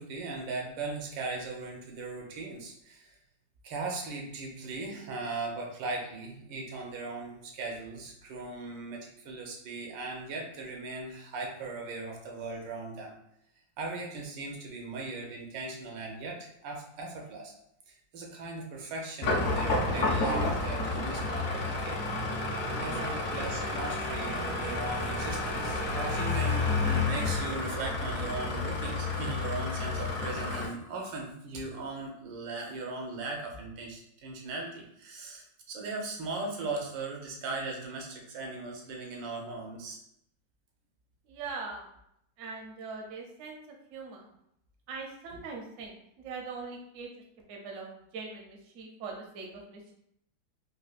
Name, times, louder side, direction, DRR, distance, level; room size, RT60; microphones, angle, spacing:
voice 1, 0.0-3.2 3.6-13.1 13.8-17.5 17.9-22.0 22.7-40.0, right 3 dB, 85° right, 0 dB, 1.4 m, -38 dB
sound 1, 19.2-30.6, left 3 dB, 60° left, 1.0 m, -30 dB
voice 2, 41.3-41.8 42.4-44.3 44.9-47.1 47.5-47.9 48.1-49.9, right 4 dB, 65° right, 0 dB, 0.8 m, -41 dB
4.2 x 2.3 x 2.4 m, 0.75 s
omnidirectional pair, 2.0 m